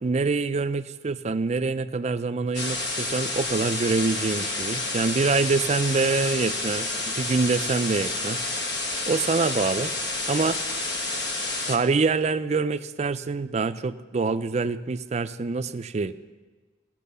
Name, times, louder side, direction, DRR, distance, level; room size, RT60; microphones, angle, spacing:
voice 1, 0.0-8.4 9.1-9.9 10.3-10.6 11.7-16.1, right 4 dB, 35° right, 12 dB, 0.4 m, -25 dB
sound 1, 2.5-11.8, left 2 dB, 65° left, 1.3 m, -29 dB
15.5 x 6.1 x 6.8 m, 1.3 s
head